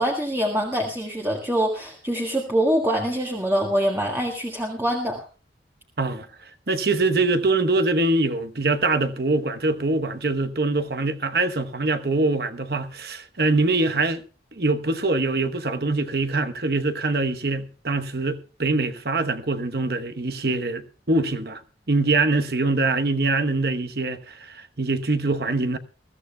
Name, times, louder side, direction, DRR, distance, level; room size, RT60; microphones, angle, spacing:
voice 1, 0.0-5.2, equal, 15° right, 1.6 m, -24 dB
voice 2, 6.7-14.2 14.6-21.6 21.9-25.8, right 2 dB, 55° right, 1.0 m, -23 dB
22.0 x 14.0 x 2.3 m
head